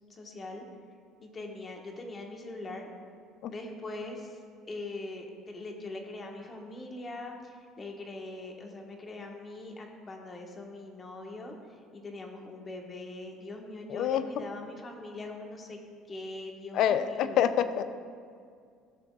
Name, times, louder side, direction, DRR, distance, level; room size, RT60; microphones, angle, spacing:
voice 1, 0.1-0.6 1.2-2.9 3.5-4.4 4.7-15.8 16.1-17.5, left 2 dB, 30° left, 2 dB, 1.3 m, -42 dB
voice 2, 13.9-14.2 16.7-17.8, left 10 dB, 65° left, 12 dB, 0.4 m, -26 dB
13.5 x 6.7 x 2.4 m, 2.2 s
supercardioid pair, 80°, 0 cm